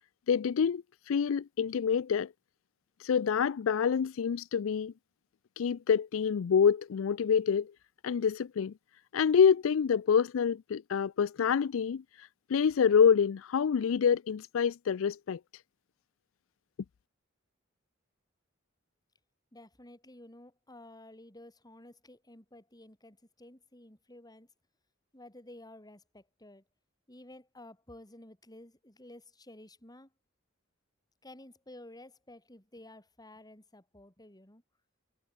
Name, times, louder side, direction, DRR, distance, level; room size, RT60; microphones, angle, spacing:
voice 1, 0.3-2.3 3.0-4.9 5.6-7.7 8.0-8.7 9.1-15.4, left 7 dB, 80° left, 0.4 m, -27 dB
voice 2, 19.5-24.5 25.1-26.6 27.1-30.1 31.2-34.6, left 1 dB, 20° left, 5.7 m, -52 dB
head